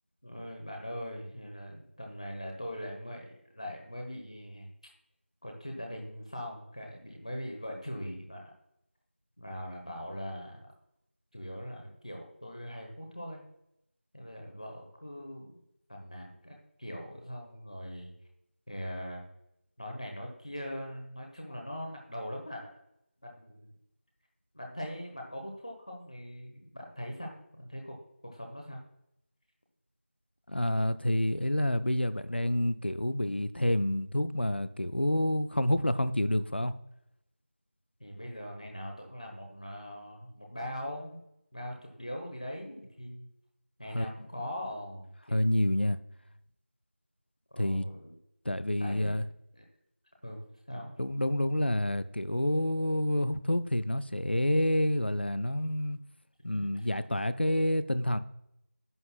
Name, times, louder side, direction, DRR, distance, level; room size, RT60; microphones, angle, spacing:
voice 1, 0.2-4.7 5.4-8.5 9.4-10.7 11.3-13.4 14.1-15.5 15.9-18.1 18.7-19.3 19.8-22.7 23.2-23.7 24.5-28.0 28.3-28.8 38.0-41.2 41.5-43.3 43.8-45.4 47.5-48.1 48.8-49.1 49.5-49.7 50.2-50.4 50.7-50.9 56.5-56.9, equal, 35° left, 0 dB, 1.2 m, -41 dB
voice 2, 30.5-36.7 43.9-44.1 45.3-46.0 47.6-47.9 48.4-49.2 51.0-56.0 56.4-58.2, left 1 dB, 55° left, 13 dB, 0.5 m, -28 dB
11.0 x 7.8 x 2.3 m, 0.80 s
figure-of-eight pair, 175°, 7 cm